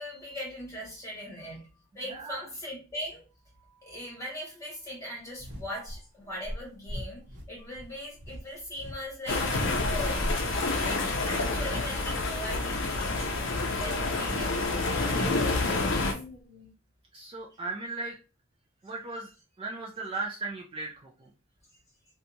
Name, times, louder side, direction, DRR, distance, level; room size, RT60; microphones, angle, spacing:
voice 1, 0.0-1.7 1.9-3.2 3.7-10.3 10.8-14.5 15.0-16.7, equal, 15° left, -4 dB, 1.3 m, -40 dB
voice 2, 2.1-2.4 17.1-18.2 18.8-19.3 19.6-21.3, right 3 dB, 25° right, 0 dB, 0.3 m, -36 dB
sound 1, 5.4-6.0 6.4-9.0 9.2-10.7 11.1-12.3 12.7-13.0 14.7-15.9 16.3-16.4, equal, 55° right, 0.9 m, -38 dB
sound 2, 9.3-16.1, left 3 dB, 65° left, 0.5 m, -28 dB
2.7 x 2.2 x 2.6 m, 0.32 s
head